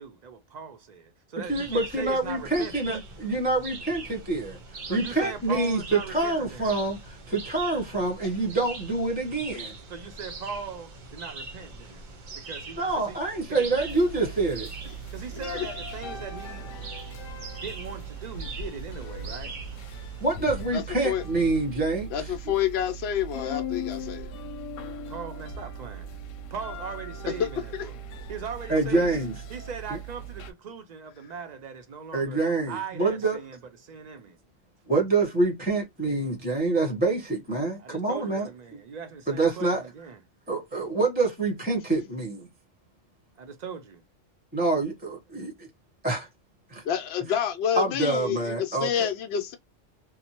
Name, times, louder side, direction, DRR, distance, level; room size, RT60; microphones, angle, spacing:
voice 1, 0.0-2.7 4.9-6.8 9.9-12.0 12.4-13.2 15.1-16.7 17.6-19.6 25.1-26.1 26.5-27.9 28.3-29.2 29.5-32.4 32.7-34.4 37.8-40.2 43.4-44.0, right 6 dB, 75° right, 0.3 m, -39 dB
voice 2, 1.5-9.7 12.8-14.7 20.2-22.1 28.7-29.3 32.1-33.4 34.9-38.5 39.3-39.8 40.5-42.5 44.5-45.5 46.0-46.3 46.7-46.8 47.8-48.9, right 3 dB, 10° right, 0.6 m, -26 dB
sound 1, 1.5-20.4, right 3 dB, 50° right, 0.7 m, -42 dB
sound 2, 13.7-30.5, right 1 dB, 90° left, 0.9 m, -39 dB
voice 3, 20.7-21.2 22.1-24.3 27.3-27.8 46.8-49.6, left 9 dB, 60° left, 0.8 m, -28 dB
2.7 x 2.0 x 2.8 m
omnidirectional pair, 1.3 m